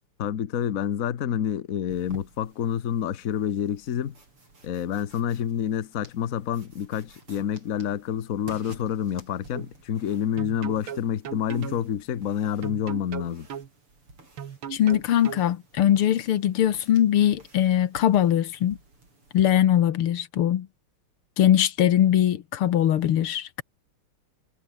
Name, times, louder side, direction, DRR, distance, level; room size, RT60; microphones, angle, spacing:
voice 1, 0.2-4.1 4.6-13.5, left 9 dB, 50° left, 1.2 m, -28 dB
sound 1, 1.9-19.5, right 2 dB, 90° right, 8.7 m, -51 dB
sound 2, 9.5-9.7 10.4-11.8 12.6-13.7 14.4-15.4, right 8 dB, 75° right, 2.5 m, -37 dB
voice 2, 14.7-18.8 19.3-20.7 21.4-23.6, left 11 dB, 80° left, 2.1 m, -21 dB
omnidirectional pair, 2.4 m